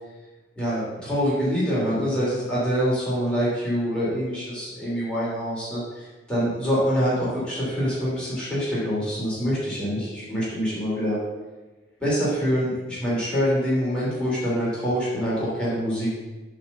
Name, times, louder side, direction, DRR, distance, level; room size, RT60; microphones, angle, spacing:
voice 1, 0.6-11.2 12.0-16.1, equal, 5° left, -10 dB, 3.1 m, -25 dB
8.4 x 4.2 x 7.1 m, 1.2 s
head